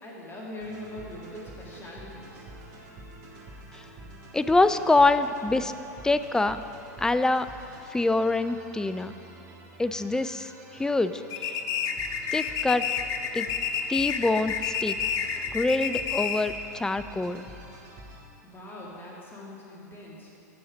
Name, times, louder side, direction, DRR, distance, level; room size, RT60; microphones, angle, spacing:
voice 1, 0.0-2.5 18.4-20.3, left 1 dB, 25° left, -4 dB, 2.6 m, -42 dB
sound 1, 0.6-18.2, right 1 dB, 35° right, 1.9 m, -47 dB
voice 2, 4.3-5.7 6.0-6.6 7.0-7.5 7.9-9.1 9.8-11.2 12.3-12.8 13.3-13.5 13.9-15.0 15.5-17.5, left 2 dB, 5° left, 11 dB, 0.3 m, -25 dB
sound 2, 11.3-16.6, left 7 dB, 40° left, 0.7 m, -29 dB
9.9 x 6.3 x 6.4 m, 2.8 s
hypercardioid pair, 100°, 9 cm